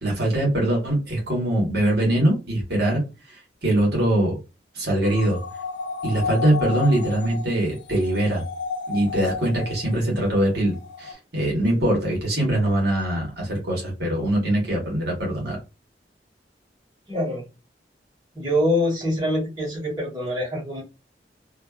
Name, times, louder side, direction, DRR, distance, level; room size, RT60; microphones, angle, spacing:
voice 1, 0.0-3.0 3.3-4.4 4.7-5.4 6.0-8.4 8.9-15.6, right 1 dB, 65° right, -1 dB, 1.2 m, -22 dB
sound 1, 5.0-10.2 10.6-11.1, left 4 dB, 75° left, 0.5 m, -32 dB
voice 2, 17.1-17.4 18.3-20.8, equal, 25° right, -5 dB, 1.3 m, -24 dB
2.5 x 2.3 x 2.3 m, 0.28 s
head